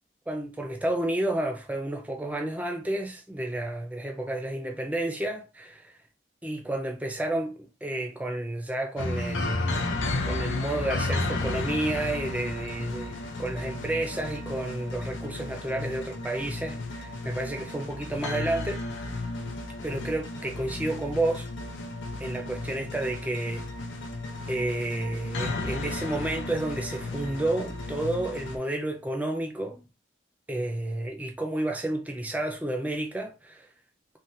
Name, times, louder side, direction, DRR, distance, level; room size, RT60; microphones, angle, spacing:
voice 1, 0.3-5.9 6.4-9.9 10.2-18.8 19.8-21.5 22.2-23.6 24.5-29.8 30.5-33.7, right 1 dB, 10° right, 0.4 m, -31 dB
sound 1, 9.0-28.6, left 2 dB, 85° left, 0.6 m, -33 dB
3.2 x 2.2 x 2.7 m
head